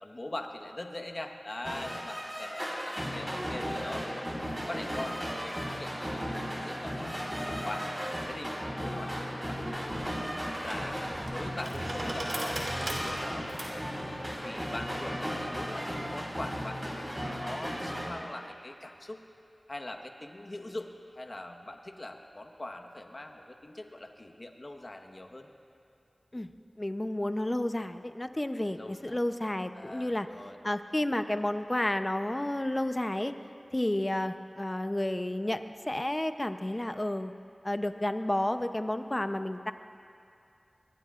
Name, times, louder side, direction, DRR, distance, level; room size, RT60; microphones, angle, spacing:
voice 1, 0.0-4.4 4.7-7.3 7.6-7.9 8.3-10.2 10.6-14.0 14.4-17.0 17.4-19.2 19.7-25.5 28.8-29.2 29.7-30.6, left 1 dB, 45° left, 3 dB, 1.3 m, -42 dB
sound 1, 1.6-18.1, equal, 15° right, 4.5 m, -36 dB
sound 2, 9.4-16.1, right 1 dB, 65° right, 4.1 m, -40 dB
voice 2, 26.8-30.3 30.6-33.3 33.7-37.3 37.6-39.7, left 1 dB, 25° left, 8 dB, 0.7 m, -31 dB
24.5 x 21.5 x 2.5 m, 2.6 s
wide cardioid pair, 55°, 0 cm